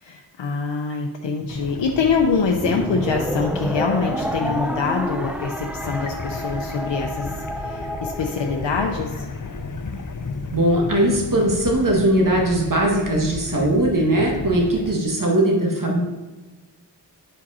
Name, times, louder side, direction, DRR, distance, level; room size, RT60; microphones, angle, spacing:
voice 1, 0.0-9.3, left 5 dB, 85° left, 2 dB, 0.7 m, -25 dB
sound 1, 1.5-14.9, left 3 dB, 45° left, 0.8 m, -34 dB
sound 2, 2.5-9.0, equal, 5° right, 0.5 m, -29 dB
voice 2, 10.5-16.0, right 1 dB, 45° right, -2 dB, 1.7 m, -20 dB
10.0 x 5.1 x 4.2 m, 1.2 s
wide cardioid pair, 45°, 43 cm